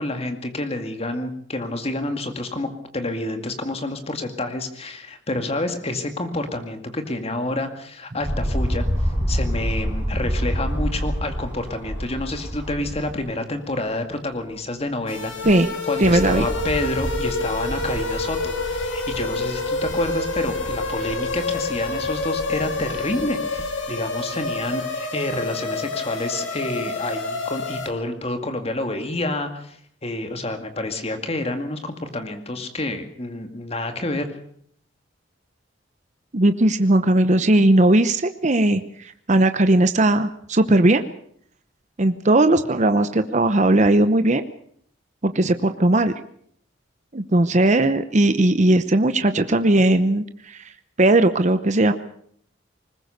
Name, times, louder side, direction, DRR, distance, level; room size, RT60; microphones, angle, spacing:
voice 1, 0.0-2.7 2.9-8.9 9.3-29.8 30.0-34.3, left 2 dB, 30° left, 7 dB, 2.2 m, -28 dB
sound 1, 8.2-13.3 13.7-13.8 15.2-23.7 24.5-24.6, equal, 5° right, 6.9 m, -29 dB
sound 2, 15.1-27.9, left 3 dB, 80° left, 2.9 m, -28 dB
voice 2, 16.0-16.5 36.3-41.1 42.0-44.4 45.2-46.1 47.1-50.6 51.0-51.9, right 1 dB, 40° right, 10 dB, 0.8 m, -18 dB
20.5 x 20.0 x 6.7 m, 0.64 s
head